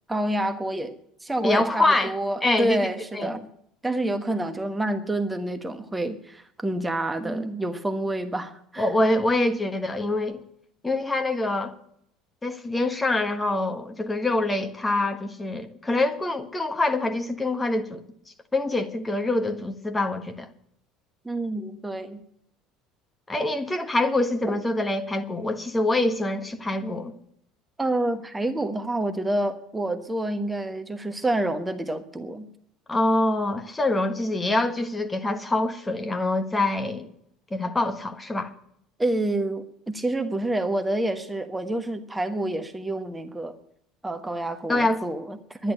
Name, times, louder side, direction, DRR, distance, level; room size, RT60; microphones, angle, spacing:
voice 1, 0.1-3.4 3.8-8.9 21.2-22.2 24.5-24.6 27.8-32.5 39.0-43.6 44.0-45.7, right 1 dB, 10° right, 1.3 m, -28 dB
voice 2, 1.4-2.1 2.4-2.9 3.1-3.3 7.2-7.5 8.8-10.4 10.8-11.7 12.4-18.0 18.5-20.5 23.3-27.1 32.9-37.1 37.5-38.5 44.7-45.0, left 2 dB, 15° left, 1.4 m, -25 dB
11.0 x 11.0 x 9.0 m
figure-of-eight pair, 65°, 0 cm